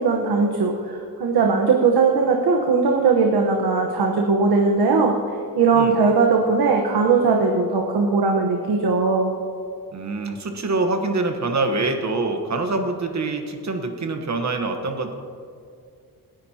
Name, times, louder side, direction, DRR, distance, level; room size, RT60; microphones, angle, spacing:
voice 1, 0.0-5.1 5.5-9.3, right 4 dB, 85° right, 1 dB, 1.3 m, -19 dB
voice 2, 9.9-15.1, right 3 dB, 45° right, 5 dB, 1.3 m, -25 dB
27.0 x 10.5 x 2.9 m, 2.3 s
wide cardioid pair, 135°, 37 cm